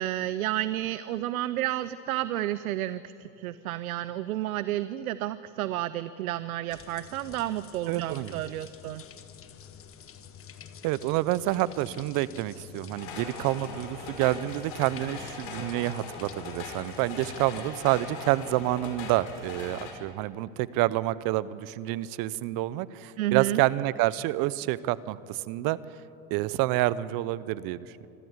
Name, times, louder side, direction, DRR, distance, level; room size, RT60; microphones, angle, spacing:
voice 1, 0.0-9.0 23.2-23.6, right 14 dB, 85° right, 15 dB, 0.7 m, -31 dB
sound 1, 6.7-17.6, left 8 dB, 30° left, 1.4 m, -49 dB
voice 2, 7.9-8.3 10.8-25.8 26.3-28.1, right 16 dB, 55° right, 19 dB, 0.8 m, -28 dB
sound 2, 12.9-19.9, left 4 dB, 65° left, 4.7 m, -40 dB
25.5 x 14.0 x 8.1 m, 2.7 s
hypercardioid pair, 95°, 42 cm